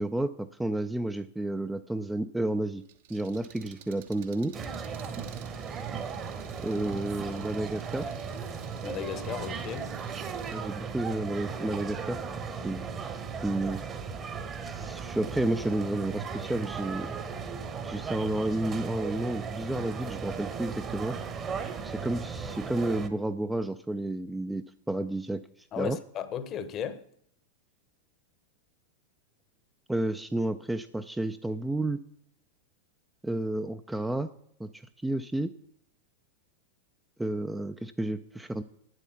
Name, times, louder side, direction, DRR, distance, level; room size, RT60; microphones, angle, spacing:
voice 1, 0.0-2.8 3.1-4.5 6.6-8.1 10.5-12.2 12.6-12.8 13.4-13.8 14.6-17.1 17.8-21.2 21.8-25.4 25.8-26.0 29.9-32.0 33.2-34.3 34.6-35.5 37.2-38.6, right 1 dB, 5° right, 0.4 m, -31 dB
Engine, 2.8-10.6, right 8 dB, 55° right, 1.0 m, -51 dB
sound 1, 4.5-23.1, right 6 dB, 25° right, 1.1 m, -36 dB
voice 2, 8.8-9.9 25.7-27.0, left 8 dB, 30° left, 0.9 m, -35 dB
9.0 x 7.9 x 7.0 m
figure-of-eight pair, 90°, 0 cm